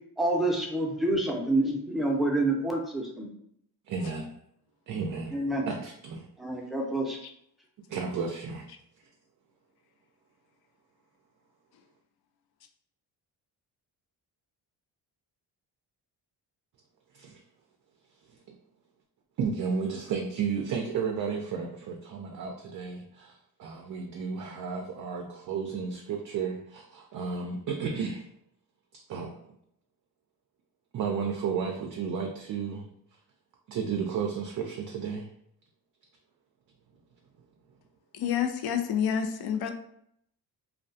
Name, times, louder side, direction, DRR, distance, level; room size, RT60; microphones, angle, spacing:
voice 1, 0.2-3.3 5.3-5.6 6.4-7.2, right 2 dB, ahead, -1 dB, 0.6 m, -27 dB
voice 2, 3.9-4.3 4.9-5.3 5.7-6.3 7.9-8.7 17.1-17.4 18.3-18.6 19.4-28.3 28.9-29.5 30.9-32.9 33.7-35.3, right 6 dB, 50° right, 1 dB, 0.4 m, -33 dB
voice 3, 38.1-39.7, left 8 dB, 60° left, 7 dB, 0.5 m, -28 dB
2.3 x 2.2 x 2.6 m, 0.71 s
cardioid pair, 70°, 43 cm